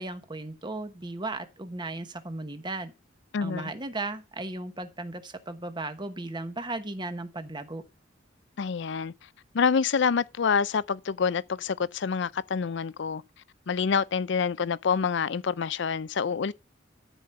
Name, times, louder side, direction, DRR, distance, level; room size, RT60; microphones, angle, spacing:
voice 1, 0.0-2.9 3.4-7.8, right 2 dB, 25° right, 1.1 m, -36 dB
voice 2, 3.3-3.7 8.6-9.1 9.5-13.2 13.7-16.5, left 6 dB, 65° left, 0.5 m, -27 dB
13.0 x 5.0 x 5.7 m
head